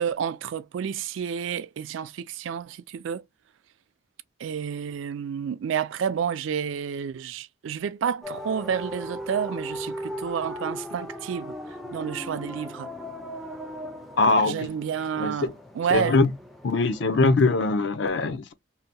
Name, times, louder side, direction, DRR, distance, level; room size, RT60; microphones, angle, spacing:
voice 1, 0.0-3.2 4.4-11.5 11.9-12.9 14.4-15.5 15.8-16.2, right 7 dB, 80° right, 0.3 m, -30 dB
sound 1, 8.2-17.3, equal, ahead, 0.4 m, -38 dB
voice 2, 14.2-14.7 15.2-15.5 15.9-16.3 16.6-18.5, left 3 dB, 65° left, 0.5 m, -22 dB
2.8 x 2.1 x 2.7 m
head